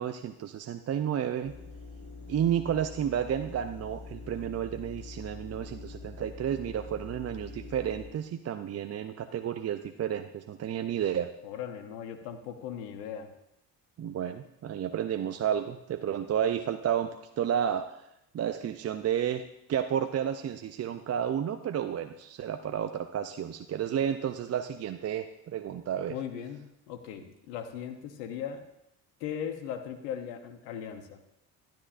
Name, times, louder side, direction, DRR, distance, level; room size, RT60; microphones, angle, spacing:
voice 1, 0.0-1.5 2.3-11.3 14.0-18.0 18.3-19.4 19.7-26.2, right 9 dB, 35° right, 8 dB, 0.5 m, -31 dB
sound 1, 1.4-8.1, left 4 dB, 25° left, 4.2 m, -45 dB
voice 2, 11.4-13.3 26.1-26.6 26.9-28.6 29.2-31.2, left 8 dB, 80° left, 8 dB, 0.9 m, -38 dB
12.0 x 10.5 x 2.5 m, 0.83 s
hypercardioid pair, 50°, 47 cm